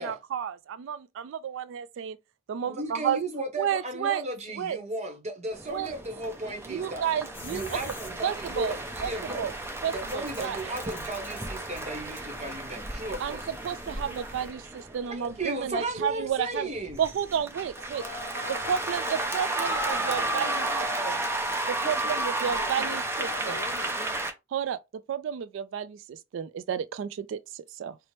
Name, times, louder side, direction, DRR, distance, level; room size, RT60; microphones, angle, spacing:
voice 1, 0.0-2.2 2.5-3.2 3.6-4.2 4.6-4.8 5.7-5.9 6.7-7.8 8.2-8.7 9.0-9.5 9.8-10.6 13.2-16.7 17.0-18.0 18.7-20.7 21.0-21.2 21.7-23.6 24.5-24.8 25.1-28.0, right 8 dB, 70° right, 0.3 m, -31 dB
voice 2, 2.7-7.1 7.5-9.5 9.9-13.5 15.0-17.0, right 2 dB, 35° right, 0.9 m, -35 dB
sound 1, 5.5-24.3, right 2 dB, 15° right, 0.5 m, -33 dB
sound 2, 7.3-14.5, left 2 dB, 30° left, 1.1 m, -47 dB
voice 3, 17.8-21.1 21.8-24.0, left 5 dB, 45° left, 0.4 m, -41 dB
4.2 x 2.0 x 3.1 m
head